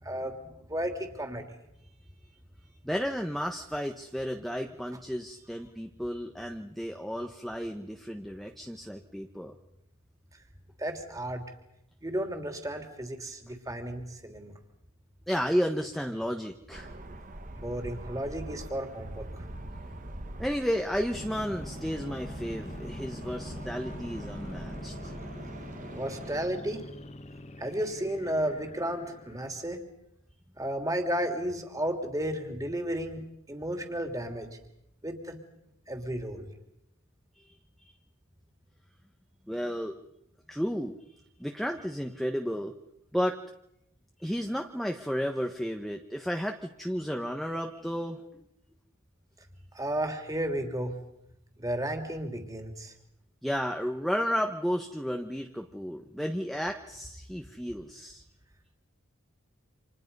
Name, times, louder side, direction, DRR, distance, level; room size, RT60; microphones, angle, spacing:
voice 1, 0.0-1.4 10.8-11.4 12.0-14.5 17.5-19.4 25.9-26.8 27.6-29.8 30.6-33.2 33.5-34.5 35.0-35.4 35.9-36.5 49.7-50.9 51.6-52.9, right 1 dB, 15° right, 5 dB, 3.0 m, -33 dB
voice 2, 2.8-9.5 15.3-16.9 20.4-25.1 37.4-37.5 37.8-37.9 39.5-40.0 40.5-41.1 41.4-42.7 43.1-43.4 44.2-48.4 53.4-58.2, equal, ahead, 4 dB, 1.1 m, -33 dB
sound 1, 16.7-26.5, right 1 dB, 40° right, 1.4 m, -43 dB
sound 2, 21.1-29.7, left 1 dB, 30° left, 1.2 m, -43 dB
30.0 x 27.5 x 5.5 m, 0.79 s
head